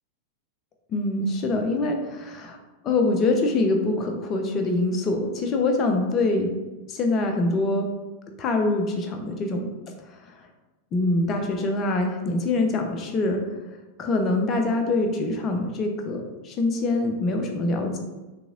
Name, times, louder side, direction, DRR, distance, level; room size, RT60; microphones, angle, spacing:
voice 1, 0.9-2.6 2.8-6.5 6.9-7.9 8.4-9.7 10.1-10.2 10.9-13.4 14.0-18.0, left 2 dB, 30° left, 3 dB, 0.5 m, -24 dB
3.9 x 2.9 x 2.4 m, 1.1 s
figure-of-eight pair, 90°, 0 cm